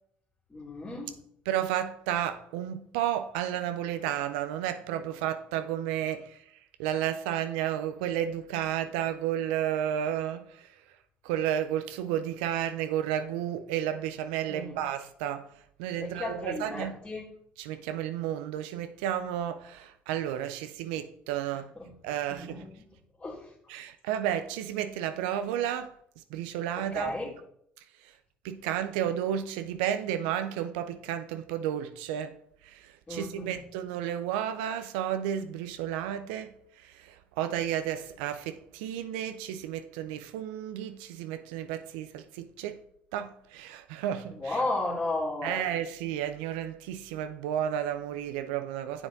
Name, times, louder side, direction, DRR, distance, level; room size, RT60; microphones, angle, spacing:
voice 1, 0.5-1.1 14.5-14.8 16.0-17.3 21.8-21.9 22.3-22.7 23.2-23.5 26.8-27.3 33.1-33.5 44.4-45.6, left 2 dB, 25° left, 2.6 m, -34 dB
voice 2, 1.5-6.4 6.8-10.7 11.2-15.5 15.8-17.0 17.6-21.7 22.0-22.7 23.7-25.9 26.3-27.1 28.0-28.1 28.4-32.3 32.6-42.8 43.1-44.6 45.4-49.1, right 10 dB, 85° right, 0.4 m, -32 dB
7.2 x 6.9 x 3.9 m
hypercardioid pair, 60°, 5 cm